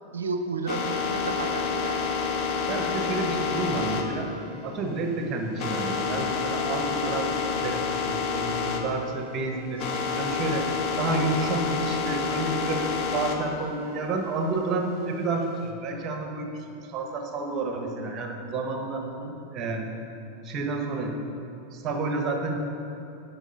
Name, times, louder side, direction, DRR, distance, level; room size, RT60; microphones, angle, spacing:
voice 1, 0.1-2.2 19.0-19.3, right 3 dB, 70° right, 6 dB, 0.6 m, -33 dB
sound 1, 0.7-8.8 9.1-13.4 13.9-15.6, left 5 dB, 35° left, 1.0 m, -29 dB
voice 2, 2.7-4.3 4.6-7.3 7.6-9.9 10.2-10.7 11.0-19.1 19.5-19.9 20.4-21.2 21.7-22.5, right 3 dB, 30° right, 3 dB, 1.2 m, -30 dB
11.5 x 5.8 x 5.6 m, 2.8 s
figure-of-eight pair, 90°, 0 cm